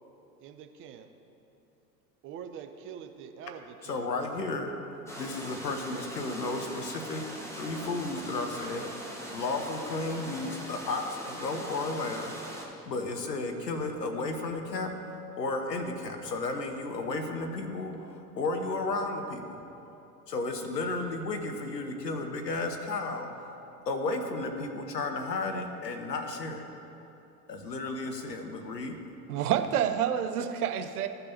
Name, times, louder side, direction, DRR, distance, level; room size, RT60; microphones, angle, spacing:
voice 1, 0.4-1.1 2.2-4.1, right 7 dB, 25° right, 6 dB, 0.5 m, -44 dB
voice 2, 3.8-4.7 5.2-7.2 7.6-8.9 9.3-12.3 12.9-19.6 20.3-23.3 23.9-26.6 27.5-28.9, left 3 dB, 85° left, 5 dB, 1.0 m, -33 dB
sound 1, 5.1-12.6, equal, 5° left, 1.2 m, -41 dB
voice 3, 29.3-31.1, right 9 dB, 65° right, 8 dB, 0.7 m, -28 dB
15.0 x 5.3 x 2.8 m, 3.0 s
figure-of-eight pair, 85°, 48 cm